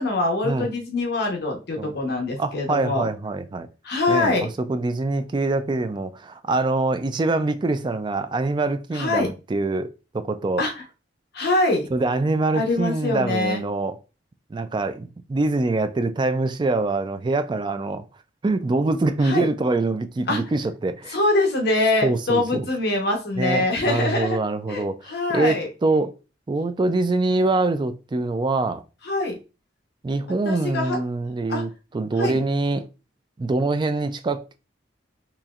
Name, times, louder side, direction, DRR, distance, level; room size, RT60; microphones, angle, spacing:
voice 1, 0.0-3.1 3.8-4.5 8.9-9.3 10.6-10.8 11.3-11.9 12.5-13.6 19.2-19.5 20.3-20.4 21.1-24.4 24.7-25.7 29.0-29.4 30.4-31.0 31.5-31.6 32.2-32.4, left 2 dB, 60° left, 0.9 m, -24 dB
voice 2, 2.4-3.7 4.1-10.7 11.9-14.0 14.5-18.0 18.4-21.2 22.0-22.7 23.4-26.1 26.5-28.8 30.0-32.9 33.4-34.4, right 2 dB, 25° right, 0.3 m, -24 dB
4.2 x 2.9 x 2.4 m
head